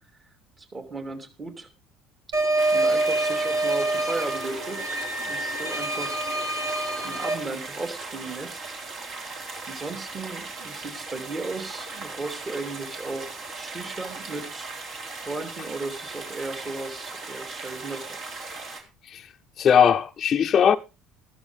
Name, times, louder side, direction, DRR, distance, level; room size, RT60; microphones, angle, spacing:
voice 1, 0.6-1.7 2.3-2.4 2.7-6.2 7.0-8.8 9.7-14.7 15.2-18.2, right 3 dB, 35° right, 2.9 m, -35 dB
sound 1, 2.3-7.3, right 2 dB, 80° right, 3.3 m, -26 dB
sound 2, 2.6-18.8, right 3 dB, 55° right, 3.7 m, -38 dB
voice 2, 19.6-20.8, left 8 dB, 45° left, 0.6 m, -19 dB
13.5 x 13.5 x 3.5 m
hypercardioid pair, 65°, 0 cm